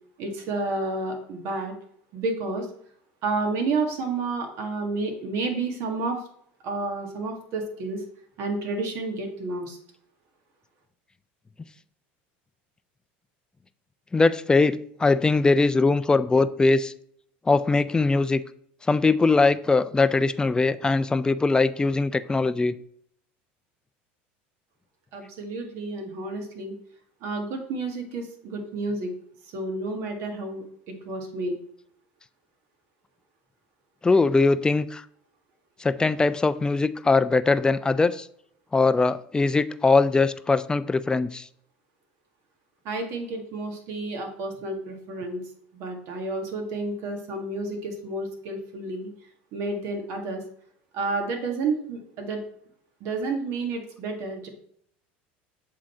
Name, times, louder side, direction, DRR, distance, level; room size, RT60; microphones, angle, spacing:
voice 1, 0.2-1.7 2.1-2.7 3.2-6.2 6.6-8.0 8.4-9.8 25.1-26.7 27.2-29.1 29.5-31.6 42.9-45.4 45.7-49.1 49.5-50.4 50.9-52.4 53.0-54.5, right 3 dB, 60° right, 3 dB, 1.8 m, -30 dB
voice 2, 14.1-16.9 17.5-18.4 18.9-22.8 34.0-35.0 35.8-38.3 38.7-41.5, left 3 dB, 15° left, 14 dB, 0.4 m, -21 dB
7.5 x 3.8 x 4.4 m, 0.65 s
supercardioid pair, 90°, 5 cm